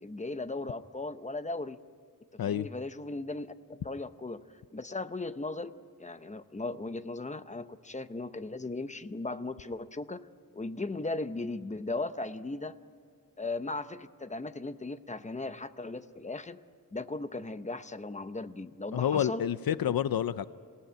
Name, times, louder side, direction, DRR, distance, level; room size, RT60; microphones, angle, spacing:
voice 1, 0.0-1.8 2.4-4.4 4.7-10.3 10.5-12.8 13.4-16.6 16.9-19.4, left 2 dB, 20° left, 11 dB, 0.7 m, -37 dB
voice 2, 18.9-20.5, left 10 dB, 80° left, 14 dB, 0.6 m, -28 dB
26.0 x 17.5 x 9.1 m, 2.2 s
wide cardioid pair, 150°, 35 cm